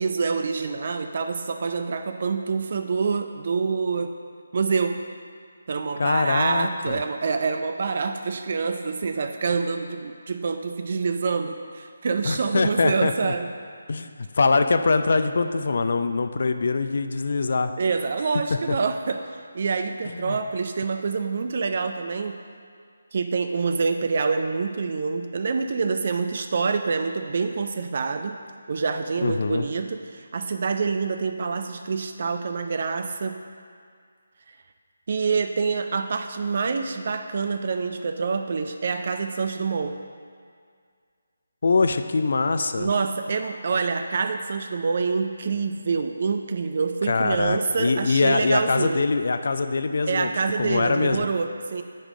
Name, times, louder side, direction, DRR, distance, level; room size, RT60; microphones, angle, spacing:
voice 1, 0.0-4.1 4.5-5.0 5.7-13.5 17.8-22.4 23.1-28.4 28.7-33.4 35.1-40.0 42.8-49.1 50.1-51.8, right 4 dB, 45° right, 7 dB, 0.3 m, -26 dB
voice 2, 6.0-7.0 12.2-13.3 13.9-17.7 18.7-18.8 20.1-20.4 29.2-29.7 41.6-42.9 47.1-50.3 50.6-51.2, left 4 dB, 55° left, 9 dB, 0.4 m, -23 dB
7.2 x 5.3 x 4.9 m, 2.1 s
figure-of-eight pair, 150°, 0 cm